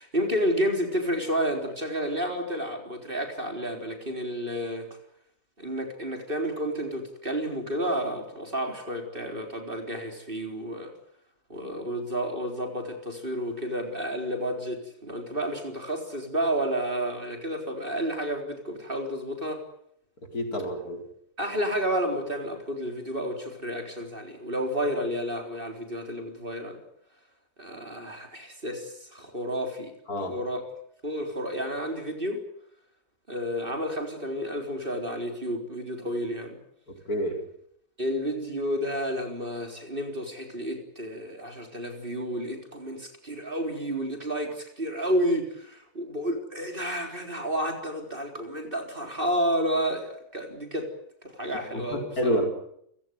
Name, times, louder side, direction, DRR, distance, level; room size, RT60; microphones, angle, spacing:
voice 1, 0.0-4.9 5.6-10.9 11.5-19.6 21.4-26.8 27.6-29.9 30.2-30.6 31.0-32.4 33.3-36.6 38.0-50.9 51.2-52.4, equal, 30° right, 4 dB, 4.1 m, -31 dB
voice 2, 20.3-21.0 30.1-30.4 37.1-37.4 51.9-52.5, equal, 60° left, 4 dB, 5.1 m, -28 dB
29.0 x 17.0 x 9.4 m, 0.72 s
omnidirectional pair, 1.8 m